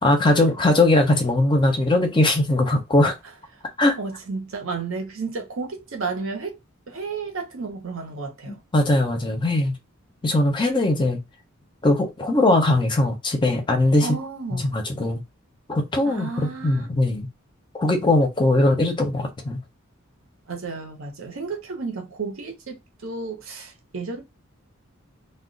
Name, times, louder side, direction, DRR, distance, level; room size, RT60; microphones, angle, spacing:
voice 1, 0.0-3.1 3.8-3.9 8.5-9.7 10.2-11.2 11.8-14.2 14.5-15.2 15.7-17.3 17.7-19.6, left 2 dB, 20° left, 0.5 m, -20 dB
voice 2, 4.0-6.6 6.9-8.6 14.0-14.7 16.0-16.9 20.5-24.2, right 4 dB, 70° right, 0.8 m, -32 dB
2.3 x 2.1 x 3.7 m
head